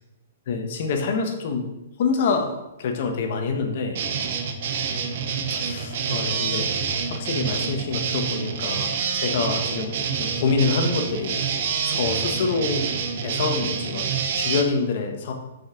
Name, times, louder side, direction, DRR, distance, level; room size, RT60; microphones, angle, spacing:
voice 1, 0.5-1.7 2.0-2.5 2.8-4.0 5.5-6.9 7.2-11.4 11.8-12.9 13.2-15.3, left 4 dB, 45° left, 4 dB, 1.4 m, -26 dB
sound 1, 3.9-14.6, right 6 dB, 45° right, 1.0 m, -27 dB
6.3 x 5.7 x 6.0 m, 0.94 s
hypercardioid pair, 170°, 0 cm